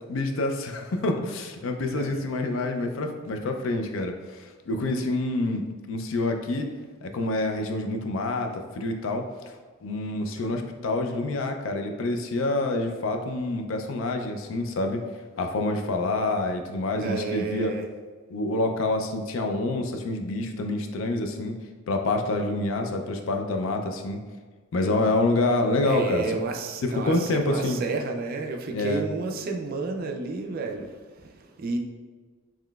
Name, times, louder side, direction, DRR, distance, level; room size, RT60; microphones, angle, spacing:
voice 1, 0.1-6.7 7.0-9.3 9.8-15.0 15.4-17.7 18.3-21.6 21.9-24.2 24.7-26.2 26.8-27.8 28.7-29.0, left 2 dB, 65° left, 5 dB, 0.4 m, -27 dB
voice 2, 17.0-17.8 25.9-31.8, right 3 dB, 45° right, 2 dB, 0.3 m, -31 dB
3.8 x 3.0 x 2.3 m, 1.4 s
head